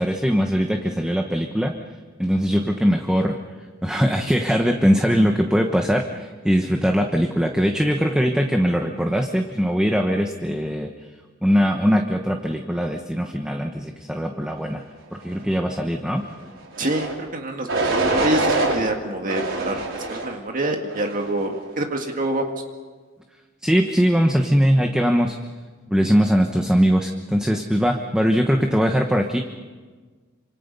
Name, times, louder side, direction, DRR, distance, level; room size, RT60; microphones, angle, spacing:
voice 1, 0.0-1.7 2.2-3.4 3.8-10.9 11.4-14.8 15.1-16.2 23.6-25.4 25.9-29.4, equal, 5° right, 3 dB, 1.1 m, -21 dB
sound 1, 16.7-17.1 17.7-18.8 19.3-20.3 20.9-21.3, right 2 dB, 70° right, 5.0 m, -24 dB
voice 2, 16.8-22.5, right 1 dB, 40° right, 3 dB, 2.0 m, -26 dB
27.5 x 26.0 x 5.5 m, 1.4 s
head